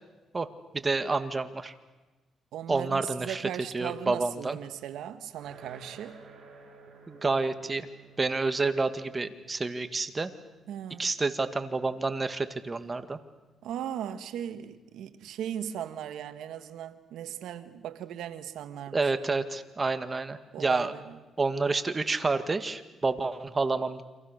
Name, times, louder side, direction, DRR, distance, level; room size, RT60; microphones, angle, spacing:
voice 1, 0.7-1.7 2.7-3.5 3.7-4.6 7.1-7.9 8.2-10.3 11.0-13.2 18.9-20.9 21.4-24.0, right 3 dB, 25° right, 10 dB, 1.9 m, -29 dB
voice 2, 2.5-6.2 10.7-11.1 13.6-19.4 20.5-21.2, right 10 dB, 80° right, 10 dB, 1.7 m, -38 dB
sound 1, 5.3-16.3, right 3 dB, 60° right, 7.5 m, -56 dB
29.5 x 26.0 x 6.7 m, 1.2 s
cardioid pair, 90°, 0 cm